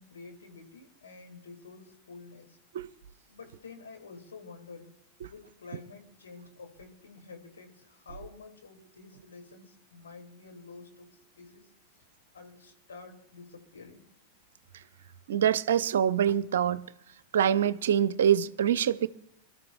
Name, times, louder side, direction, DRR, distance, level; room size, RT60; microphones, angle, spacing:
voice 1, 0.0-2.6 3.3-4.9 5.3-12.0 12.3-14.0, left 4 dB, 70° left, 2.3 m, -49 dB
voice 2, 15.3-16.9 17.3-19.1, right 9 dB, 60° right, 0.5 m, -25 dB
27.0 x 13.0 x 2.4 m
figure-of-eight pair, 90°, 0 cm